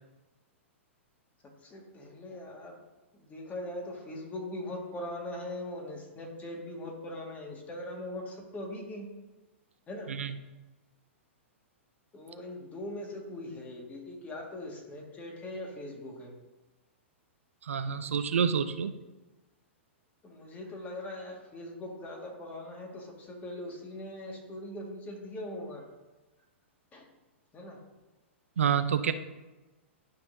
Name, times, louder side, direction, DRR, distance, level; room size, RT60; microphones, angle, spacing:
voice 1, 1.6-2.8 3.1-9.1 9.9-10.1 12.1-16.3 17.9-18.0 20.2-25.9 26.9-27.1 27.5-27.8, left 1 dB, 20° left, 0 dB, 1.8 m, -41 dB
voice 2, 17.7-19.0 28.6-29.1, right 7 dB, 85° right, 10 dB, 0.5 m, -28 dB
11.0 x 5.6 x 2.7 m, 1.1 s
hypercardioid pair, 120°, 7 cm